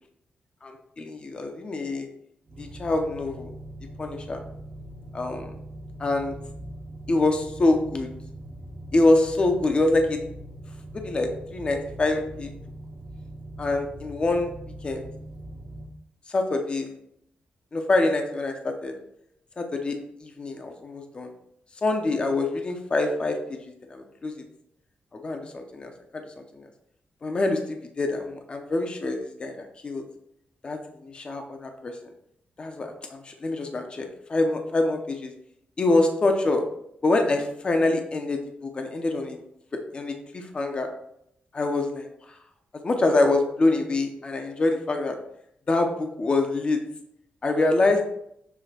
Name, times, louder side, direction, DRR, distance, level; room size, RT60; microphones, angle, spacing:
voice 1, 0.6-2.1 2.6-3.5 4.0-4.4 5.1-5.5 6.0-6.3 7.1-8.1 8.9-10.2 10.9-12.5 13.6-14.5 14.8-15.1 16.3-16.9 17.7-18.9 19.6-21.3 21.8-23.4 23.6-24.3 25.1-26.2 26.5-26.6 27.2-30.0 30.6-31.9 32.6-35.3 35.8-36.6 37.0-39.4 39.9-40.9 41.5-42.4 42.8-45.2 45.7-46.8 47.4-48.0, left 2 dB, 30° left, 4 dB, 0.7 m, -25 dB
sound 1, 2.4-15.9, right 1 dB, 60° right, 1.3 m, -41 dB
7.0 x 3.4 x 4.2 m, 0.74 s
wide cardioid pair, 150°, 3 cm